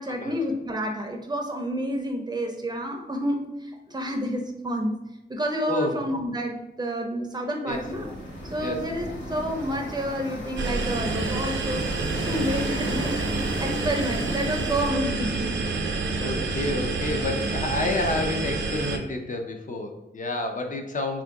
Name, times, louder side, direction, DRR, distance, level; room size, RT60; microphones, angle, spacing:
voice 1, 0.0-5.0 5.3-8.1 8.4-11.8 12.3-15.7, equal, 20° right, 2 dB, 0.5 m, -29 dB
voice 2, 5.7-6.0 7.6-7.8 8.6-8.8 16.2-21.2, left 2 dB, 45° left, 3 dB, 0.5 m, -29 dB
sound 1, 7.7-14.9, equal, 85° left, 1.2 m, -37 dB
sound 2, 8.0-14.4, left 1 dB, 25° left, 0.8 m, -40 dB
sound 3, 10.6-19.0, right 3 dB, 85° right, 0.5 m, -28 dB
3.5 x 2.5 x 4.5 m, 0.94 s
wide cardioid pair, 160°, 19 cm